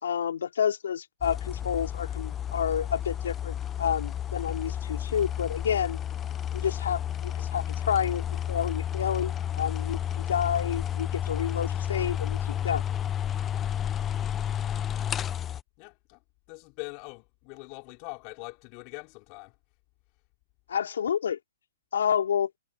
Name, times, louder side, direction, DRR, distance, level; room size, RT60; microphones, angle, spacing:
voice 1, 0.0-6.0 6.5-12.9 20.7-21.4 21.9-22.5, left 8 dB, 70° left, 3.5 m, -29 dB
sound 1, 1.2-15.6, left 10 dB, 20° left, 1.2 m, -31 dB
voice 2, 15.8-16.2 16.5-19.5, left 33 dB, 40° left, 4.9 m, -42 dB
hypercardioid pair, 125°, 0 cm